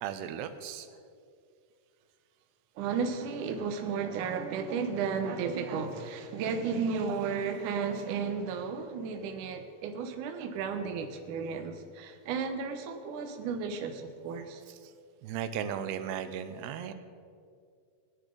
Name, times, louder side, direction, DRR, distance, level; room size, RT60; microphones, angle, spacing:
voice 1, 0.0-0.9 14.7-14.8 15.2-16.9, right 9 dB, 85° right, 10 dB, 2.7 m, -36 dB
voice 2, 2.8-14.6, right 5 dB, 70° right, 5 dB, 2.0 m, -33 dB
19.5 x 9.9 x 3.9 m, 2.3 s
omnidirectional pair, 4.7 m